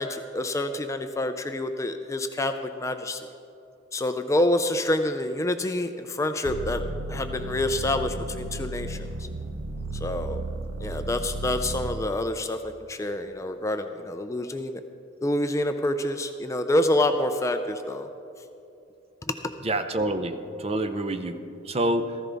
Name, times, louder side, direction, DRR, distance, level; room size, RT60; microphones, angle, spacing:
voice 1, 0.0-3.3 3.9-6.8 7.1-9.0 10.0-10.4 10.8-14.8 15.2-18.1, left 1 dB, 15° left, 7 dB, 0.4 m, -27 dB
sound 1, 6.4-12.1, right 2 dB, 70° right, 0.7 m, -34 dB
voice 2, 19.6-22.2, right 1 dB, 30° right, 8 dB, 0.6 m, -27 dB
15.0 x 14.5 x 3.5 m, 2.8 s
head